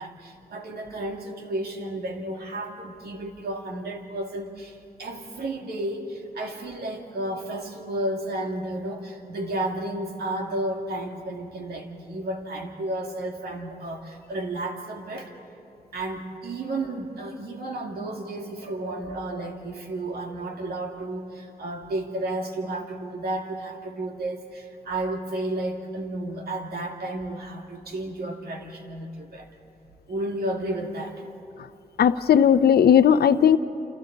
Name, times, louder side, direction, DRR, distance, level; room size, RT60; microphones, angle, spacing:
voice 1, 0.0-15.3 15.9-29.5 30.1-31.2, right 1 dB, 80° right, 2 dB, 2.3 m, -32 dB
voice 2, 32.0-33.6, left 8 dB, 80° left, 12 dB, 0.7 m, -17 dB
28.5 x 28.0 x 4.0 m, 2.6 s
wide cardioid pair, 110°, 16 cm